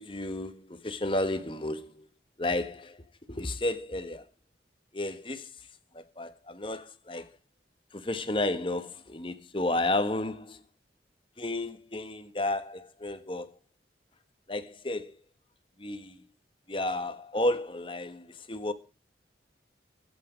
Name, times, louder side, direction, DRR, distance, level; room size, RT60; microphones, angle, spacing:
voice 1, 0.0-2.1 2.4-3.0 3.3-4.2 4.9-5.5 5.9-7.3 7.9-10.6 11.4-13.5 14.5-15.1 15.8-16.2 16.7-18.7, left 2 dB, 30° left, 1.3 m, -32 dB
23.0 x 8.6 x 5.1 m
head